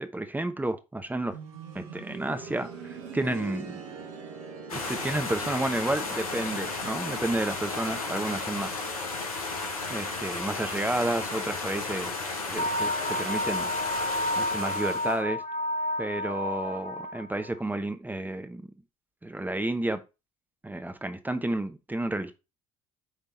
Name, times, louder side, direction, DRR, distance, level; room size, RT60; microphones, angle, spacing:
voice 1, 0.0-1.4 1.7-3.8 4.7-8.8 9.9-12.2 12.4-12.9 13.2-13.7 14.4-15.4 16.0-18.7 19.2-20.0 20.6-22.3, right 1 dB, 10° right, 1.0 m, -31 dB
sound 1, 1.3-12.1 12.4-12.5 13.4-13.5, right 5 dB, 75° right, 1.6 m, -45 dB
sound 2, 4.7-15.2, left 3 dB, 85° left, 1.4 m, -34 dB
sound 3, 12.6-17.5, left 1 dB, 40° left, 1.2 m, -31 dB
9.3 x 3.4 x 4.3 m
hypercardioid pair, 60°, 18 cm